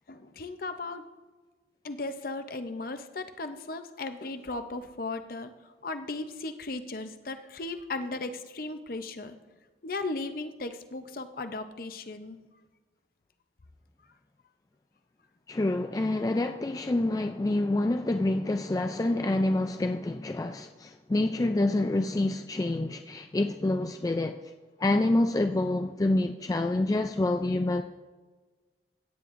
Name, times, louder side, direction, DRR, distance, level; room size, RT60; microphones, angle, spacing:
voice 1, 0.1-1.0 1.8-9.4 9.8-12.4, left 3 dB, 55° left, 9 dB, 0.7 m, -36 dB
voice 2, 15.5-24.4 24.8-27.8, left 2 dB, 20° left, 6 dB, 0.3 m, -27 dB
16.5 x 9.5 x 2.6 m, 1.3 s
head